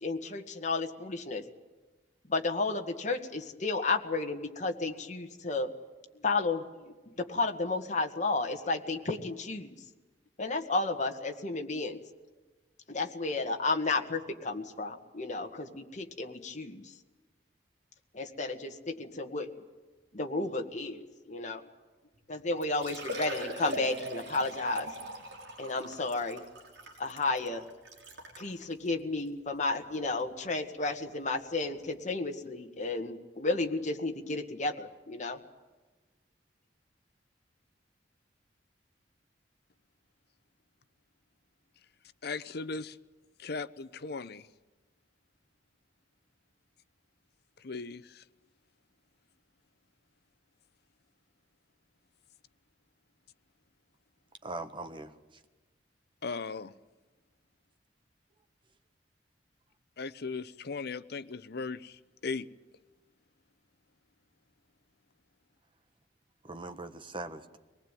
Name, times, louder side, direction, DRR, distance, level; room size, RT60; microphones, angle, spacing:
voice 1, 0.0-1.4 2.3-5.7 6.2-9.8 10.4-12.0 12.9-16.9 18.1-19.5 20.1-21.7 22.3-24.9 25.6-26.4 27.0-27.6 28.4-35.4, left 3 dB, 40° left, 1.8 m, -32 dB
Liquid, 22.2-22.3 22.6-28.5 29.2-29.3 29.7-29.8 31.5-31.6 31.7-31.8, right 1 dB, 70° right, 5.2 m, -41 dB
voice 2, 42.2-43.0 43.4-44.5 47.6-48.2 56.2-56.7 60.0-62.5, left 4 dB, 60° left, 0.8 m, -38 dB
voice 3, 54.4-55.1 66.4-67.6, right 2 dB, 30° right, 1.5 m, -40 dB
24.0 x 19.5 x 9.2 m
head